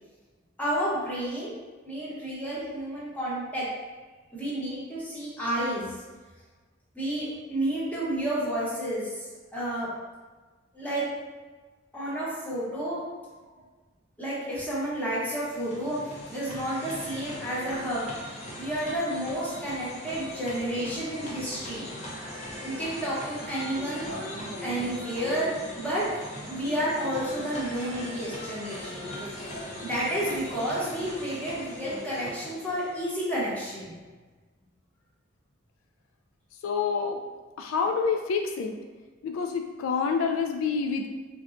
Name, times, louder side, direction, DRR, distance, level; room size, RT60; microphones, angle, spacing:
voice 1, 0.6-1.6 1.8-3.7 4.3-5.9 6.9-9.1 9.5-9.9 10.7-11.0 11.9-13.0 14.2-16.0 16.3-18.1 18.6-21.9 22.6-24.1 24.6-26.1 26.5-33.9, right 1 dB, 10° left, -9 dB, 0.8 m, -31 dB
sound 1, 15.3-33.2, equal, 35° left, 0.5 m, -39 dB
voice 2, 36.6-37.2 37.6-38.7 39.2-41.2, left 5 dB, 90° left, 5 dB, 0.3 m, -27 dB
3.9 x 2.2 x 2.4 m, 1.3 s
head